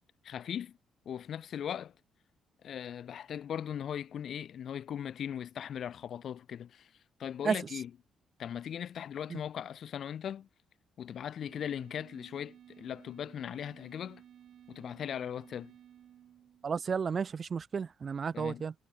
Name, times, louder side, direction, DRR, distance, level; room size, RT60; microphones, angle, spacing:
voice 1, 0.2-0.8 1.1-1.9 2.6-6.9 7.2-7.9 8.4-10.5 11.0-14.2 14.7-15.7 18.3-18.7, left 9 dB, 60° left, 0.4 m, -39 dB
sound 1, 11.4-16.9, right 10 dB, 70° right, 5.5 m, -56 dB
voice 2, 16.6-18.7, right 6 dB, 45° right, 0.6 m, -32 dB
cardioid pair, 90°, 0 cm